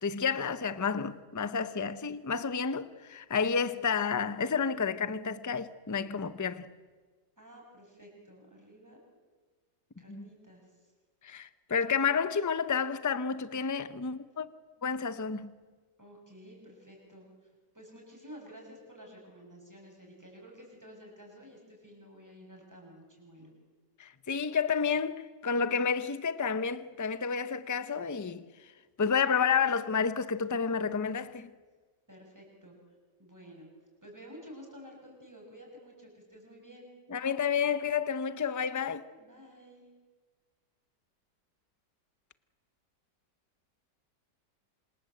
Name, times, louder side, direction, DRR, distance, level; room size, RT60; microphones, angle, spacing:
voice 1, 0.0-6.7 10.1-10.3 11.2-14.5 14.8-15.5 24.0-28.4 29.0-31.5 37.1-39.0, left 6 dB, 20° left, 0.4 m, -30 dB
voice 2, 7.4-9.0 10.0-10.6 16.0-17.3 17.7-23.5 32.1-32.8 33.2-33.7 34.0-36.9 39.2-39.9, equal, 10° right, 7.2 m, -51 dB
27.5 x 27.0 x 7.9 m
omnidirectional pair, 1.9 m